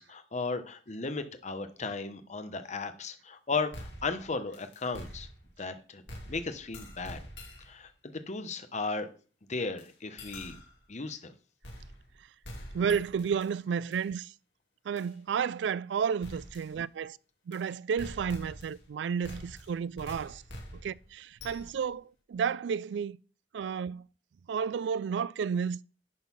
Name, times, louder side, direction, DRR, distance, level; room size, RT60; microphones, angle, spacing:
voice 1, 0.0-5.3 5.6-6.0 6.3-7.2 7.6-9.1 9.5-10.6 10.9-11.3, left 4 dB, 40° left, 1.0 m, -35 dB
sound 1, 3.7-5.7 6.1-7.8 9.8-9.9 10.2-10.8 11.6-12.2 12.4-13.5 13.9-14.0 15.0-15.1 16.2-16.7 17.5-17.6 18.0-18.9 19.2-21.9, equal, 80° left, 2.6 m, -46 dB
voice 2, 12.7-14.3 14.9-17.2 17.5-20.4 20.7-23.2 23.5-24.1 24.5-25.8, right 7 dB, 75° right, 0.3 m, -32 dB
10.5 x 4.0 x 5.5 m
head